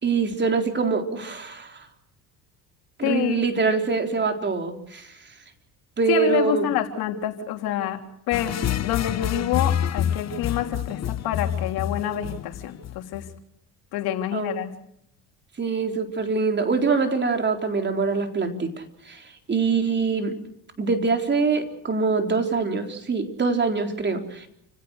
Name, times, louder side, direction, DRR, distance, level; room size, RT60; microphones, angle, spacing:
voice 1, 0.0-1.9 3.0-5.1 6.0-6.7 14.3-14.5 15.6-20.3 20.8-24.5, right 4 dB, 30° right, 5 dB, 3.9 m, -24 dB
voice 2, 3.0-3.4 6.1-8.0 8.3-13.2 13.9-14.7, left 11 dB, 75° left, 5 dB, 3.3 m, -27 dB
sound 1, 8.3-13.3, left 10 dB, 45° left, 1.3 m, -27 dB
29.5 x 17.0 x 6.5 m, 0.77 s
supercardioid pair, 95°, 37 cm